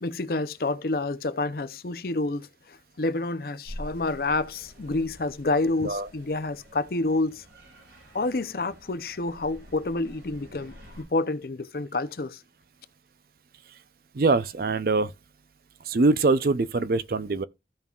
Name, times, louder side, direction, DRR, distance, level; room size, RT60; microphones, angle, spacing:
voice 1, 0.0-7.4 8.1-12.4, left 2 dB, 55° left, 0.6 m, -28 dB
sound 1, 3.6-11.0, equal, 70° right, 4.1 m, -47 dB
voice 2, 14.1-15.1 15.8-17.4, right 3 dB, 50° right, 0.5 m, -23 dB
15.5 x 5.3 x 2.4 m
head